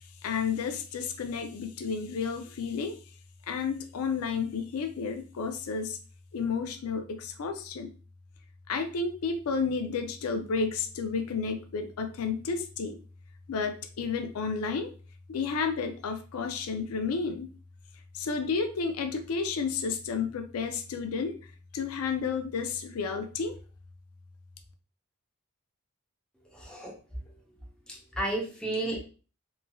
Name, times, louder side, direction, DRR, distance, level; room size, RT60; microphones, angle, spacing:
voice 1, 0.2-3.0 3.5-6.0 6.3-7.9 8.7-13.0 13.5-14.9 15.3-17.5 18.1-23.5, left 5 dB, 90° left, 6 dB, 0.4 m, -31 dB
voice 2, 26.5-26.9 27.9-29.1, right 1 dB, 5° left, -2 dB, 0.6 m, -32 dB
3.0 x 2.5 x 2.2 m, 0.37 s
head